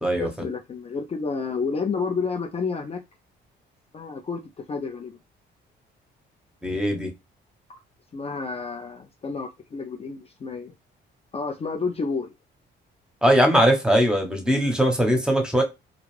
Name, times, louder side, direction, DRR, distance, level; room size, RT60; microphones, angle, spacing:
voice 1, 0.2-3.0 3.9-5.2 7.7-7.8 8.1-10.7 11.3-12.3, left 4 dB, 30° left, 0.4 m, -30 dB
voice 2, 6.6-7.1 13.2-15.6, equal, 5° right, 0.9 m, -20 dB
2.4 x 2.3 x 3.2 m
cardioid pair, 90°, 20 cm